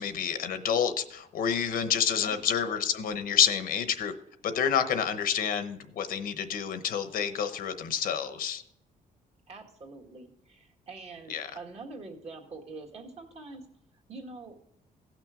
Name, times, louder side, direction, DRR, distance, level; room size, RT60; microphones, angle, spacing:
voice 1, 0.0-4.1 4.4-8.6 11.3-11.5, left 8 dB, 70° left, 10 dB, 0.9 m, -28 dB
voice 2, 9.5-13.7 14.1-14.6, right 3 dB, 45° right, 0 dB, 1.9 m, -45 dB
16.5 x 6.1 x 3.7 m, 0.76 s
cardioid pair, 155°, 15 cm